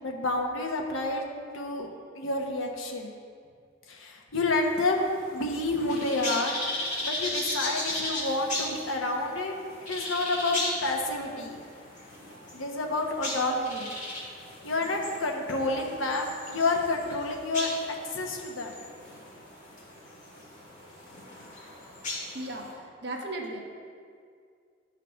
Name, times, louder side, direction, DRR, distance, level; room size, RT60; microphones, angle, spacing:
voice 1, 0.0-1.3 1.5-1.9 2.1-3.1 3.9-6.5 7.0-9.5 9.8-11.6 12.5-13.9 14.6-17.7 18.1-18.7, left 2 dB, 80° left, 2 dB, 1.0 m, -29 dB
sound 1, 4.6-22.7, left 1 dB, 35° left, 1.9 m, -37 dB
voice 2, 22.3-22.7 23.0-23.6, right 1 dB, 55° right, 0 dB, 1.0 m, -35 dB
11.5 x 4.0 x 5.6 m, 2.2 s
head